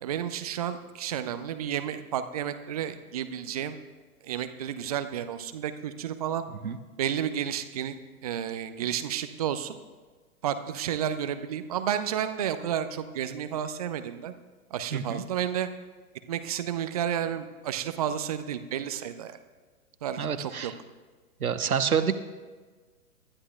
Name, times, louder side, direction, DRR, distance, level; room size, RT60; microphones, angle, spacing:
voice 1, 0.0-3.8 4.2-6.5 7.0-8.0 8.2-9.8 10.4-14.3 14.7-15.7 16.3-19.4 20.0-20.7, right 9 dB, 25° right, 10 dB, 0.5 m, -31 dB
voice 2, 14.9-15.2 20.2-20.7 21.4-22.1, right 7 dB, 70° right, 10 dB, 1.0 m, -27 dB
24.5 x 12.5 x 2.3 m, 1.4 s
figure-of-eight pair, 115°, 45 cm